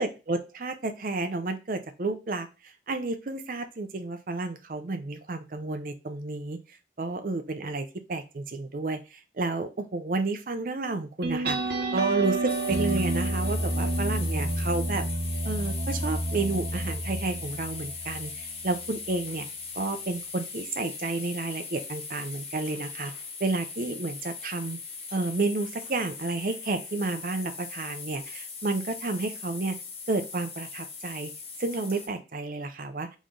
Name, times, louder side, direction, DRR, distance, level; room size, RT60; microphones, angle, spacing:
voice 1, 0.0-2.5 2.9-6.6 7.0-15.0 15.4-19.5 19.7-23.1 23.4-24.8 25.1-29.8 30.1-31.3 31.6-33.1, right 3 dB, 50° right, 8 dB, 0.6 m, -31 dB
sound 1, 11.2-18.4, right 2 dB, 70° right, 0.9 m, -29 dB
sound 2, 12.5-32.1, left 5 dB, 35° left, 0.7 m, -40 dB
3.7 x 3.1 x 3.8 m, 0.30 s
head